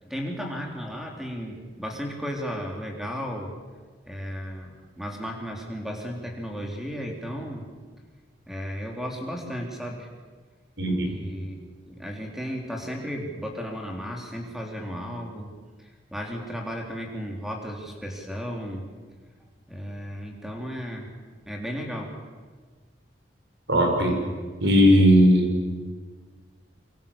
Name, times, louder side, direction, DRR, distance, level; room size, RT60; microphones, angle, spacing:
voice 1, 0.0-3.5 4.0-7.7 8.5-10.1 11.0-11.6 11.8-15.5 15.8-18.9 19.7-21.1 21.5-22.2, equal, ahead, 1 dB, 3.5 m, -34 dB
voice 2, 10.8-11.2 23.7-24.2 24.6-25.5, equal, 70° right, 3 dB, 5.7 m, -18 dB
25.0 x 24.0 x 7.1 m, 1.5 s
head